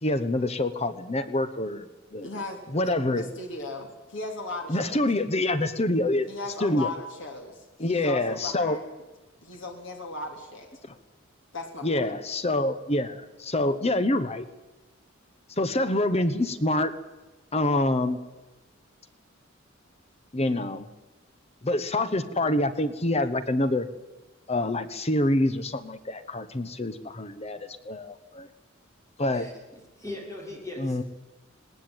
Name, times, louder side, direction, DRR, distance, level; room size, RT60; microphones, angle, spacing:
voice 1, 0.0-2.3 2.7-3.3 4.7-6.3 6.6-6.9 7.8-8.8 11.8-14.5 15.6-16.9 17.5-18.2 20.3-20.9 21.6-23.9 24.5-27.6 27.8-28.5 29.2-29.5 30.8-31.0, left 1 dB, 30° left, 11 dB, 1.1 m, -26 dB
voice 2, 2.2-5.0 6.3-9.0 9.4-10.7 11.5-12.1, left 3 dB, 65° left, 3 dB, 3.4 m, -37 dB
voice 3, 30.0-31.0, left 2 dB, 15° left, 0 dB, 5.9 m, -38 dB
19.5 x 18.5 x 9.1 m, 1.1 s
head